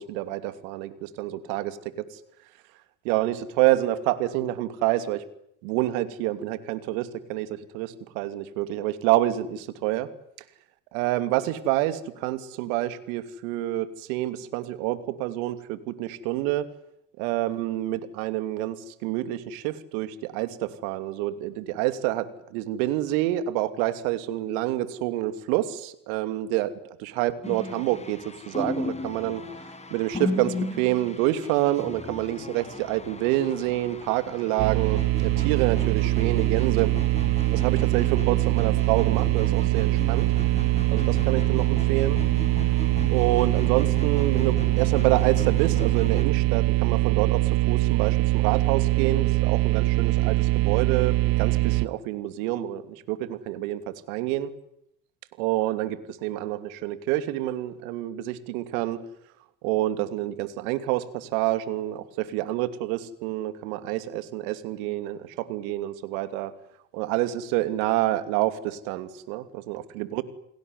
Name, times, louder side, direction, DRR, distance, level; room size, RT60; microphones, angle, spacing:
voice 1, 0.0-2.1 3.0-5.2 5.6-10.1 10.9-16.7 17.2-26.7 27.0-29.4 29.9-36.9 37.5-40.3 40.9-42.2 43.1-54.5 55.4-59.0 59.6-66.5 66.9-70.2, right 15 dB, 70° right, 12 dB, 2.8 m, -27 dB
sound 1, 27.4-46.2, left 2 dB, 15° left, 5.2 m, -36 dB
sound 2, 34.6-51.9, right 20 dB, 50° right, 1.1 m, -23 dB
29.0 x 19.5 x 9.6 m, 0.74 s
hypercardioid pair, 75°, 44 cm